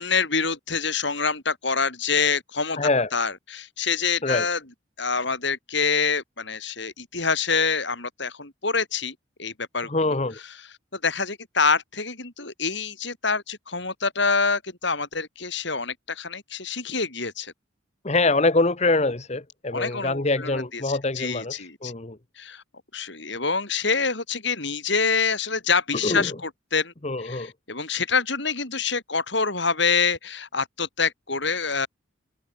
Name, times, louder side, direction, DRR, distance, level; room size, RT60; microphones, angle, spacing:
voice 1, 0.0-2.8 3.1-4.6 5.0-9.9 10.9-17.5 19.7-21.9 22.4-22.6 22.9-26.9 27.2-31.9, left 5 dB, 60° left, 5.2 m, -26 dB
voice 2, 2.8-3.1 4.2-4.5 9.9-10.4 18.0-22.2 26.0-26.3 27.0-27.5, left 2 dB, 35° left, 1.1 m, -24 dB
head